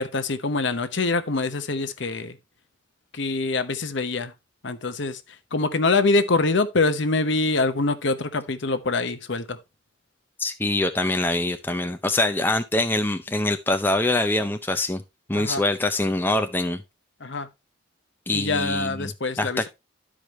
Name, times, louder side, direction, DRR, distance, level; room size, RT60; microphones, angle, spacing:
voice 1, 0.0-2.4 3.1-4.3 4.6-5.2 5.5-9.6 15.3-15.6 17.2-17.5 18.3-19.7, left 3 dB, 60° left, 0.8 m, -24 dB
voice 2, 10.4-15.0 15.3-16.8 18.3-19.1 19.4-19.7, left 2 dB, 10° left, 0.5 m, -24 dB
12.0 x 4.9 x 3.1 m
head